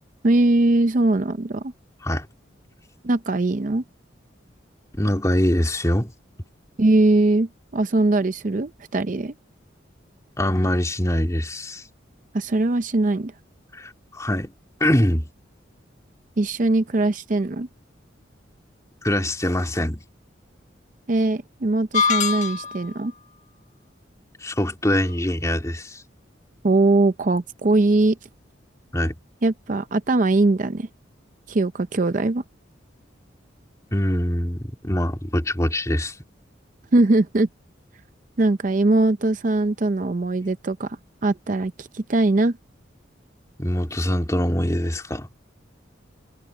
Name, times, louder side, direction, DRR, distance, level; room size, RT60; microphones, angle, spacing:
voice 1, 0.2-1.7 3.0-3.8 6.8-9.3 12.3-13.3 16.4-17.7 21.1-23.1 26.6-28.2 29.4-30.9 31.5-32.4 36.9-37.5 38.4-41.0 41.2-42.6, right 2 dB, 45° right, 0.6 m, -21 dB
voice 2, 4.9-6.1 10.4-11.8 13.7-14.5 14.8-15.3 19.0-20.0 24.4-26.0 28.9-29.1 33.9-36.2 43.6-45.3, left 1 dB, 15° left, 2.9 m, -23 dB
sound 1, 21.9-22.9, left 5 dB, 40° left, 1.2 m, -23 dB
head